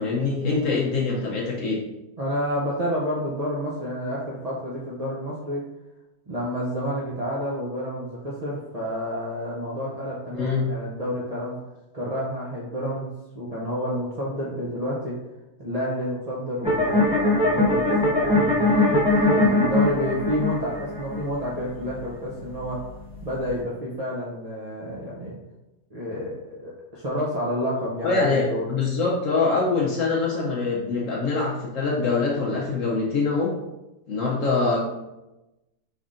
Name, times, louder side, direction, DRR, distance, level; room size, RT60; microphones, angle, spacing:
voice 1, 0.0-1.8 10.3-10.7 28.0-33.5 34.1-34.8, left 4 dB, 65° left, -3 dB, 0.9 m, -24 dB
voice 2, 2.2-5.6 6.3-11.6 11.9-15.2 15.6-18.8 19.3-22.8 23.2-25.4 25.9-28.7, equal, 70° right, -6 dB, 0.3 m, -29 dB
sound 1, 16.6-23.6, left 2 dB, 5° right, 0.8 m, -22 dB
5.3 x 3.4 x 2.5 m, 0.99 s
omnidirectional pair, 1.7 m